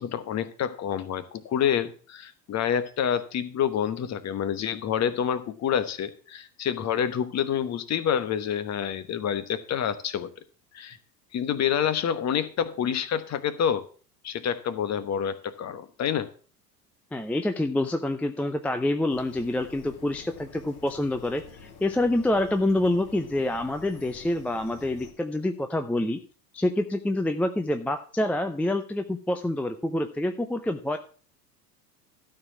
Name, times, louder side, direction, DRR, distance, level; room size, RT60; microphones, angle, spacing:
voice 1, 0.0-10.3 10.7-11.0 11.3-13.9 14.2-16.3, left 8 dB, 30° left, 13 dB, 1.1 m, -28 dB
voice 2, 17.1-26.2 26.5-31.0, left 1 dB, 5° left, 7 dB, 0.5 m, -27 dB
sound 1, 19.1-25.1, left 5 dB, 60° left, 2.7 m, -48 dB
12.5 x 4.8 x 7.2 m, 0.40 s
hypercardioid pair, 80°, 49 cm